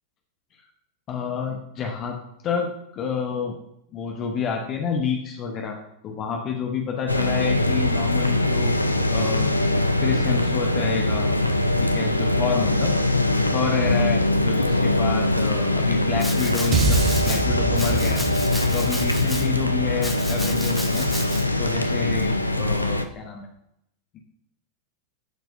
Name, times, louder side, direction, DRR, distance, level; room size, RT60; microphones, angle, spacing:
voice 1, 1.1-2.2 2.4-3.5 3.9-5.8 6.0-8.7 9.1-9.5 10.0-11.3 11.8-12.9 13.5-17.0 17.2-18.2 18.7-21.1 21.6-23.5 24.1-24.2, left 6 dB, 35° left, 2 dB, 1.0 m, -29 dB
sound 1, 7.1-23.0, left 1 dB, 85° left, 0.4 m, -22 dB
Domestic sounds home sounds, 16.2-17.4 17.7-19.5 20.0-21.4, left 1 dB, 5° left, 1.3 m, -33 dB
sound 2, 16.7-21.1, right 4 dB, 30° right, 0.7 m, -27 dB
13.0 x 4.6 x 2.7 m, 0.77 s
figure-of-eight pair, 90°, 0 cm